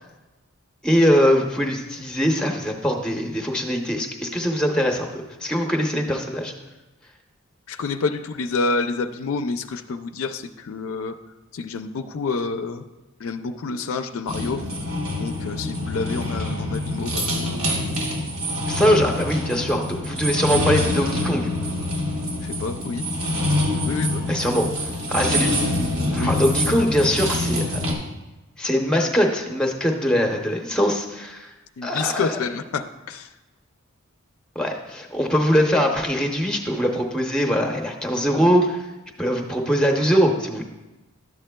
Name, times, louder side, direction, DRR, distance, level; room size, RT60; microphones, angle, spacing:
voice 1, 0.8-6.5 18.7-21.5 24.3-24.7 25.1-25.9 26.1-27.9 28.6-31.5 31.8-32.4 34.6-38.9 39.2-40.6, equal, 5° left, 2 dB, 0.6 m, -22 dB
voice 2, 7.7-11.1 11.5-12.8 13.2-14.6 15.2-17.6 22.4-23.0 23.5-23.6 23.9-24.3 26.1-26.4 26.7-26.8 31.8-33.3, left 4 dB, 70° left, 8 dB, 0.4 m, -28 dB
sound 1, 14.3-27.9, left 1 dB, 85° right, 1.5 m, -25 dB
11.0 x 7.4 x 2.2 m, 1.1 s
head